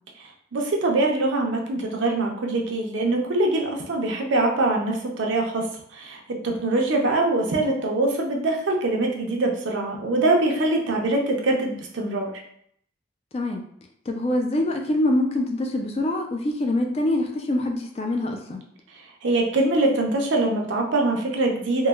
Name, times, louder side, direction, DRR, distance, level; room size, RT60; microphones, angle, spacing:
voice 1, 0.5-5.7 5.9-12.3 19.2-21.9, right 2 dB, 90° right, 1 dB, 0.5 m, -23 dB
voice 2, 14.1-18.6, left 1 dB, 35° left, 3 dB, 0.3 m, -24 dB
3.0 x 2.1 x 2.2 m, 0.69 s
head